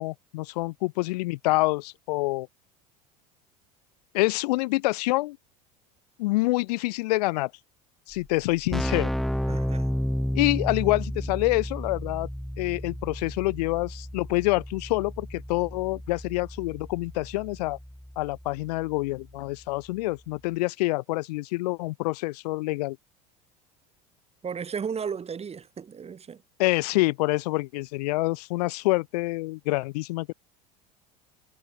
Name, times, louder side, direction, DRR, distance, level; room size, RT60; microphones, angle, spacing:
voice 1, 0.0-2.5 4.1-5.4 6.2-7.5 8.1-9.1 10.3-12.3 12.6-17.8 18.2-23.0 26.6-30.3, left 21 dB, 70° left, 1.0 m, -26 dB
Keyboard (musical), 8.1-8.2 8.4-19.0, equal, ahead, 7.2 m, -32 dB
voice 2, 9.5-9.9 24.4-26.4, right 6 dB, 30° right, 3.6 m, -34 dB
hypercardioid pair, 75°, 21 cm